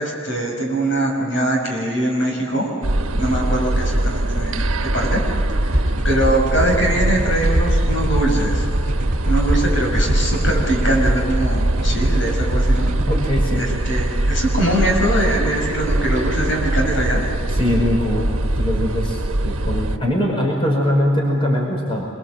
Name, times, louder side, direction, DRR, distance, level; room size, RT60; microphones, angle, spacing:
voice 1, 0.0-2.7 3.1-5.4 5.7-8.7 9.2-12.9 13.5-17.2, right 1 dB, 65° left, 1 dB, 6.3 m, -22 dB
sound 1, 2.8-20.0, right 1 dB, 85° right, 1.2 m, -21 dB
sound 2, 5.7-13.4, equal, 40° right, 3.4 m, -25 dB
voice 2, 13.1-13.7 17.5-18.3 18.5-22.1, equal, 25° left, -1 dB, 5.2 m, -21 dB
27.0 x 24.0 x 7.7 m, 2.3 s
head